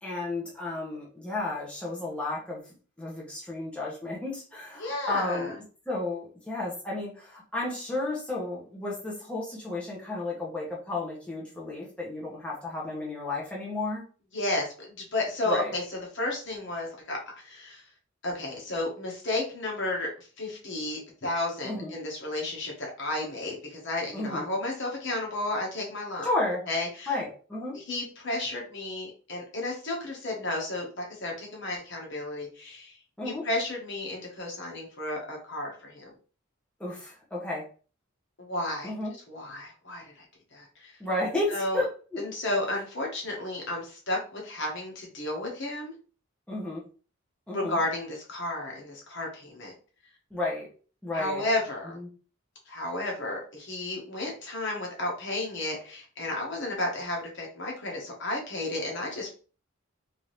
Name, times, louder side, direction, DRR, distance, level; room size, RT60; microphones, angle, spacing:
voice 1, 0.0-2.6 3.0-5.6 5.9-14.0 15.4-15.8 21.6-21.9 24.1-24.4 26.2-26.6 27.1-27.8 33.2-33.4 36.8-37.6 38.8-39.1 41.0-42.2 46.5-46.8 47.5-47.8 50.3-50.7 51.0-51.4 51.9-52.1, left 2 dB, 5° left, -5 dB, 1.1 m, -32 dB
voice 2, 4.8-5.5 14.3-17.8 18.2-26.3 26.7-27.1 27.7-33.0 33.2-36.1 38.4-38.9 39.3-40.2 40.5-40.9 41.5-41.8 42.2-45.9 47.5-49.7 51.1-52.0 52.7-59.3, left 2 dB, 65° left, -1 dB, 1.3 m, -32 dB
3.6 x 2.8 x 3.2 m, 0.38 s
head